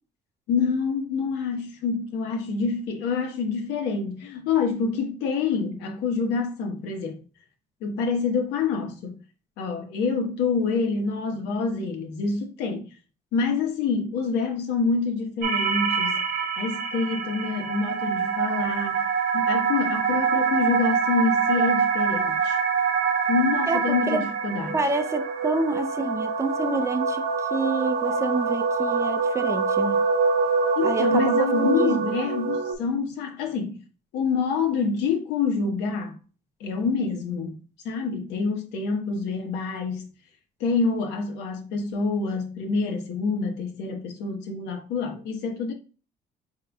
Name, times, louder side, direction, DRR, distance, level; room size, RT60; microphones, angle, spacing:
voice 1, 0.5-7.2 7.8-9.2 9.6-12.9 13.3-16.2 16.6-19.1 19.3-22.6 23.3-24.8 30.8-33.8 34.1-36.2 36.6-37.6 37.8-40.1 40.6-45.7, left 5 dB, 90° left, 1.0 m, -27 dB
sound 1, 15.4-32.7, right 5 dB, 75° right, 0.8 m, -25 dB
voice 2, 23.7-24.2 24.7-27.2 27.5-30.1 30.8-32.1, right 3 dB, 15° right, 0.4 m, -28 dB
4.8 x 3.7 x 2.3 m
cardioid pair, 110°, 17 cm